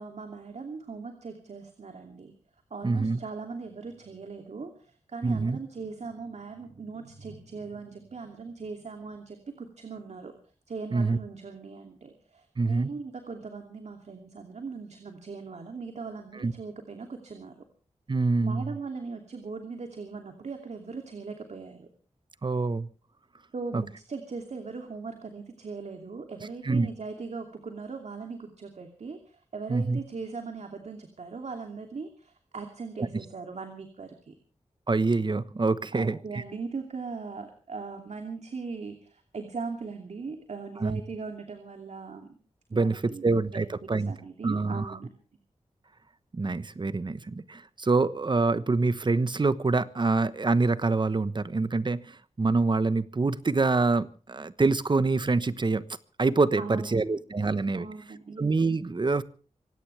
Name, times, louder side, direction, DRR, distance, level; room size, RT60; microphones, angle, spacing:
voice 1, 0.0-2.3 2.7-10.3 10.7-17.6 18.4-21.9 23.5-34.3 35.9-42.3 42.7-43.2 43.5-45.1 56.6-57.0 57.7-58.4, right 4 dB, 70° right, 5 dB, 2.8 m, -39 dB
voice 2, 2.8-3.2 5.2-5.6 10.9-11.2 12.6-12.9 16.4-16.5 18.1-18.7 22.4-22.9 23.7-23.8 26.6-26.9 29.7-30.0 33.0-33.1 34.9-36.4 40.8-41.0 42.7-44.1 44.4-45.0 46.3-55.8 56.2-57.9 58.4-59.2, right 3 dB, 40° right, 15 dB, 1.1 m, -26 dB
25.0 x 17.0 x 3.4 m, 0.39 s
wide cardioid pair, 90°, 12 cm